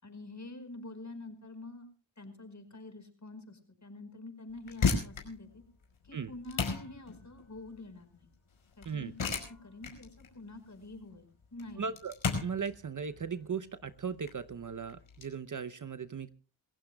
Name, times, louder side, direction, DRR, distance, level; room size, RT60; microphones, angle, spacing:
voice 1, 0.0-1.9 2.2-5.6 6.0-8.3 8.8-11.9, left 2 dB, 35° left, 7 dB, 4.9 m, -47 dB
sound 1, 4.5-15.3, left 4 dB, 80° left, 4.9 m, -36 dB
voice 2, 11.8-12.1 12.4-16.3, right 6 dB, 40° right, 13 dB, 0.8 m, -37 dB
27.0 x 16.0 x 2.3 m, 0.35 s
cardioid pair, 65°, 47 cm